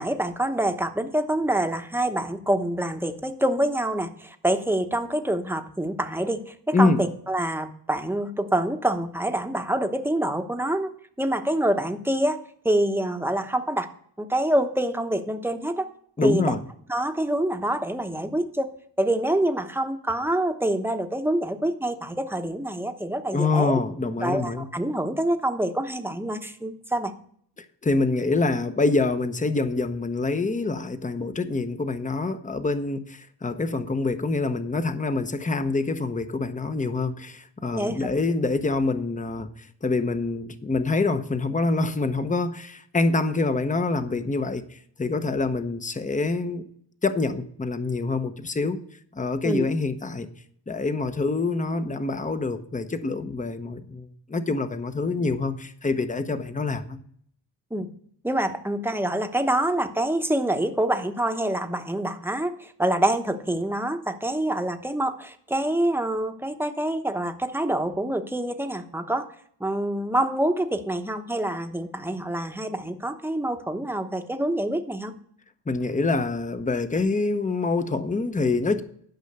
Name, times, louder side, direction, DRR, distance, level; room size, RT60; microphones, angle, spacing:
voice 1, 0.0-10.9 11.2-13.9 14.2-15.9 16.2-16.5 16.9-23.8 24.2-27.1 37.7-38.1 49.4-49.7 57.7-57.9 58.2-69.3 69.6-75.1, right 1 dB, 5° right, 7 dB, 1.0 m, -26 dB
voice 2, 16.2-16.6 23.3-24.7 27.6-46.6 47.0-48.8 49.1-50.3 50.7-57.0 75.7-78.8, left 3 dB, 15° left, 10 dB, 0.9 m, -26 dB
12.0 x 5.4 x 6.7 m, 0.63 s
cardioid pair, 80°, 44 cm